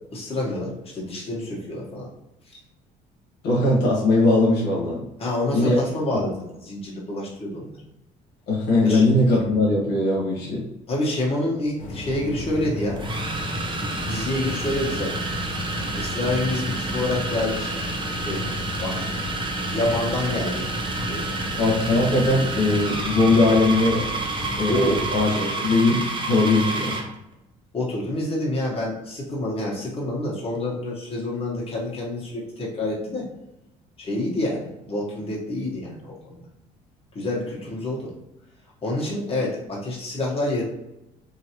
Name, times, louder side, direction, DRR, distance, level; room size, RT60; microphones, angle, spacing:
voice 1, 0.1-2.1 5.2-6.3 6.6-7.8 8.8-9.0 10.9-13.0 13.8-15.2 15.9-17.8 18.2-18.5 18.8-19.1 19.7-20.7 21.1-21.4 24.7-25.0 25.3-25.7 26.7-26.8 27.7-33.3 34.0-36.4 37.1-38.1 38.8-40.6, left 1 dB, 35° left, -4 dB, 1.4 m, -27 dB
voice 2, 3.4-5.0 5.5-5.8 8.5-10.6 21.6-24.0 24.6-26.0 26.3-27.0, left 2 dB, 80° left, -3 dB, 1.1 m, -20 dB
sound 1, 11.8-25.2, left 2 dB, 50° left, 0.8 m, -34 dB
sound 2, 11.8-11.9 13.0-27.1, right 3 dB, 25° right, 0.6 m, -30 dB
3.0 x 2.7 x 2.9 m, 0.90 s
supercardioid pair, 80°, 18 cm